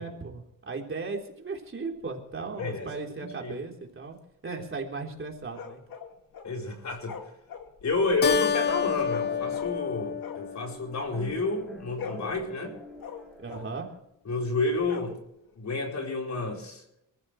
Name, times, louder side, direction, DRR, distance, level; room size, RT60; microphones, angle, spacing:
voice 1, 0.0-4.2 4.4-5.8 13.4-13.9, right 4 dB, 40° right, 1 dB, 3.8 m, -36 dB
sound 1, 2.5-2.9 5.5-6.6 6.9-9.9 10.2-11.4 11.8-13.8 14.8-15.6, left 6 dB, 85° left, 2.4 m, -43 dB
voice 2, 3.2-3.5 6.4-7.1 7.8-12.8 14.3-15.1 15.6-16.8, left 3 dB, 55° left, 1 dB, 4.5 m, -30 dB
Keyboard (musical), 8.2-11.1, left 8 dB, 30° left, 0.5 m, -29 dB
sound 2, 8.3-14.0, left 1 dB, ahead, 7.1 m, -45 dB
27.0 x 14.5 x 3.2 m, 0.80 s
wide cardioid pair, 115°, 33 cm